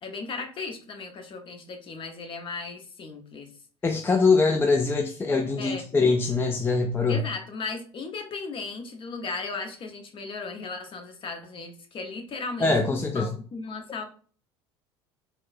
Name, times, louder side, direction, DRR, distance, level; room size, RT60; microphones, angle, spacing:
voice 1, 0.0-3.5 5.6-5.8 7.1-14.0, left 4 dB, 40° left, 4 dB, 0.8 m, -36 dB
voice 2, 3.8-7.2 12.6-13.3, left 4 dB, 15° left, 4 dB, 0.4 m, -23 dB
4.1 x 2.1 x 2.4 m, 0.42 s
hypercardioid pair, 70°, 14 cm